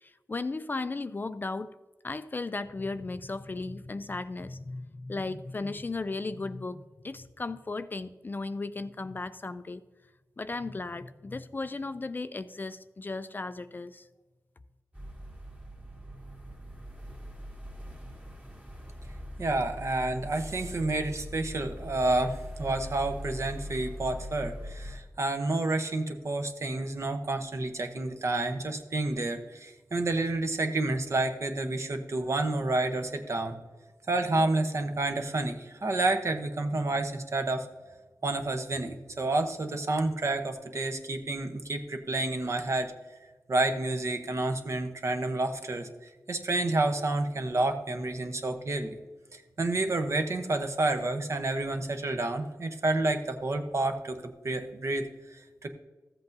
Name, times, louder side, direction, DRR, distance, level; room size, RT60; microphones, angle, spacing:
voice 1, 0.0-1.7 2.0-9.8 10.4-14.1, left 3 dB, 30° left, 12 dB, 0.3 m, -36 dB
sound 1, 14.9-25.0, equal, 25° right, 1.9 m, -42 dB
voice 2, 19.4-33.5 34.1-37.7 38.2-42.9 43.5-45.9 46.3-49.0 49.3-55.7, right 2 dB, 50° right, 6 dB, 0.9 m, -29 dB
14.5 x 7.9 x 2.6 m, 1.2 s
wide cardioid pair, 130°, 6 cm